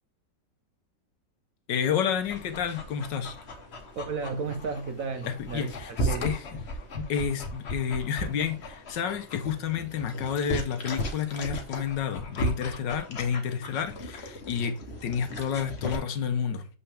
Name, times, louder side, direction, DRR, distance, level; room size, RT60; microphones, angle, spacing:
voice 1, 1.7-3.4 5.2-6.6 6.9-16.7, left 7 dB, 75° left, 1.5 m, -30 dB
Dog, 2.2-16.0, equal, 40° left, 1.2 m, -36 dB
voice 2, 4.0-6.3, right 5 dB, 55° right, 1.1 m, -34 dB
6.7 x 5.6 x 3.4 m
omnidirectional pair, 2.0 m